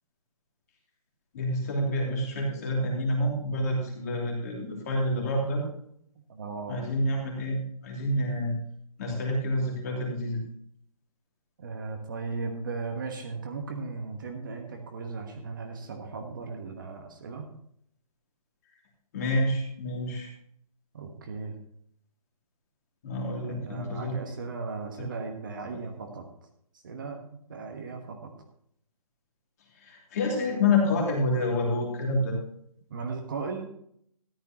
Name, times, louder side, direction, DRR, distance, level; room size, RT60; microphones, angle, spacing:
voice 1, 1.3-5.6 6.7-8.5 9.0-10.4 19.1-20.3 23.0-24.2 29.8-32.4, left 1 dB, 25° left, -1 dB, 3.0 m, -28 dB
voice 2, 6.2-6.8 11.6-17.5 20.9-21.6 23.3-26.3 26.8-27.2 27.5-28.3 32.9-33.7, right 4 dB, 35° right, 3 dB, 1.3 m, -37 dB
13.5 x 11.5 x 3.0 m, 0.67 s
hypercardioid pair, 170°, 19 cm